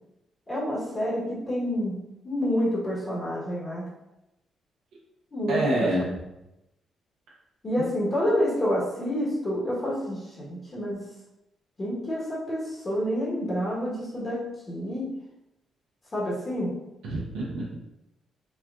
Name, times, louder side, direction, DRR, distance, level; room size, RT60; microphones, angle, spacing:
voice 1, 0.5-3.8 5.3-6.1 7.6-11.1 11.8-15.1 16.1-16.8, equal, 35° left, -6 dB, 1.2 m, -28 dB
voice 2, 5.5-6.1 7.8-7.9 17.0-17.8, right 1 dB, 85° right, -5 dB, 0.8 m, -27 dB
4.2 x 2.2 x 2.4 m, 0.91 s
cardioid pair, 70°, 0 cm